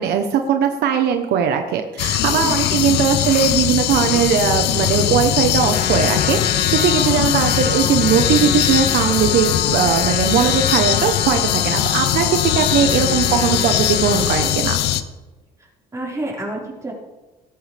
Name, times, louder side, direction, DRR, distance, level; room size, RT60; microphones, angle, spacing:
voice 1, 0.0-14.8, right 7 dB, 75° right, 5 dB, 1.2 m, -19 dB
sound 1, 2.0-15.0, left 12 dB, 80° left, 0.8 m, -20 dB
voice 2, 2.3-3.0 15.9-16.9, right 1 dB, 20° right, -4 dB, 5.2 m, -29 dB
Trumpet, 5.6-14.6, left 5 dB, 60° left, 2.6 m, -29 dB
17.5 x 14.0 x 3.6 m, 1.2 s
cardioid pair, 110°, 17 cm